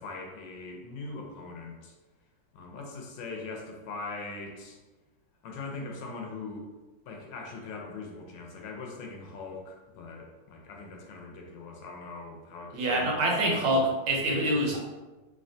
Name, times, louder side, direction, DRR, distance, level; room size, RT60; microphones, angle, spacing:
voice 1, 0.0-1.9 2.5-4.8 5.4-6.7 7.1-13.3, left 3 dB, 80° left, 0 dB, 1.2 m, -41 dB
voice 2, 12.7-14.8, right 1 dB, 80° right, -1 dB, 1.3 m, -26 dB
3.3 x 2.1 x 2.6 m, 1.2 s
omnidirectional pair, 2.0 m